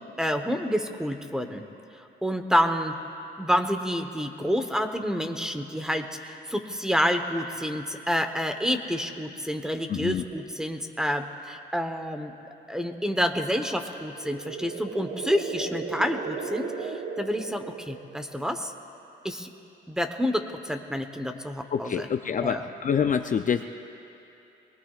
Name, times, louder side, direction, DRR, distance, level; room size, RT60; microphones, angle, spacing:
voice 1, 0.2-1.6 1.9-3.0 3.4-12.3 12.7-18.7 19.2-19.5 19.9-22.1 22.4-22.6, equal, 5° right, 6 dB, 1.1 m, -28 dB
voice 2, 9.9-10.2 21.7-23.7, left 7 dB, 40° left, 7 dB, 0.6 m, -26 dB
sound 1, 14.0-18.3, right 5 dB, 70° right, 1.4 m, -36 dB
26.5 x 20.0 x 2.5 m, 2.9 s
cardioid pair, 90°, 20 cm